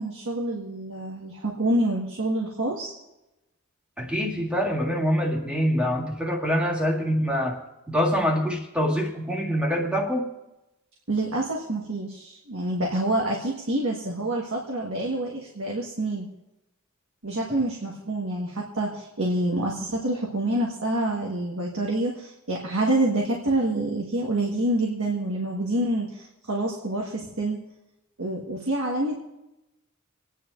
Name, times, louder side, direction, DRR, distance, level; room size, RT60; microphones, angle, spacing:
voice 1, 0.0-2.9 11.1-16.3 17.2-27.6 28.2-29.2, right 1 dB, 75° right, -2 dB, 1.7 m, -27 dB
voice 2, 4.0-7.6 7.9-10.3, equal, 5° right, -1 dB, 1.9 m, -25 dB
28.5 x 10.0 x 2.7 m, 0.96 s
head